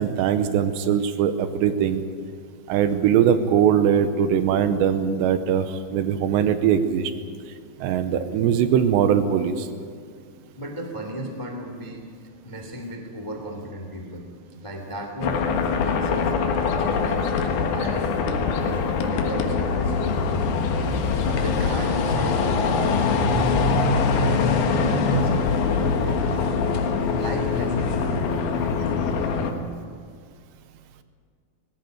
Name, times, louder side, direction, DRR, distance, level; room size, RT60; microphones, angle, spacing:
voice 1, 0.0-2.0 2.7-7.1 7.8-9.7, right 8 dB, 80° right, 10 dB, 3.0 m, -21 dB
voice 2, 10.6-12.1 12.4-14.3 14.6-16.3 16.8-17.4 17.7-18.1 18.6-20.4 20.8-20.9 21.2-29.2, right 1 dB, 15° left, 3 dB, 1.1 m, -35 dB
sound 1, 15.2-29.5, left 4 dB, 65° left, 3.1 m, -23 dB
19.5 x 17.5 x 9.1 m, 2.1 s
omnidirectional pair, 5.3 m